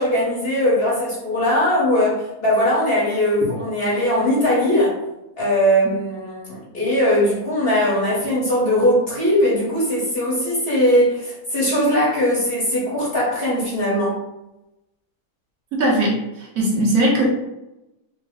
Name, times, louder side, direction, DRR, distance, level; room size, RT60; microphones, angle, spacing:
voice 1, 0.0-5.0 5.4-14.2, equal, 45° left, -7 dB, 1.0 m, -20 dB
voice 2, 15.7-17.2, right 1 dB, 65° right, -4 dB, 1.2 m, -19 dB
3.1 x 2.0 x 3.4 m, 0.91 s
omnidirectional pair, 1.6 m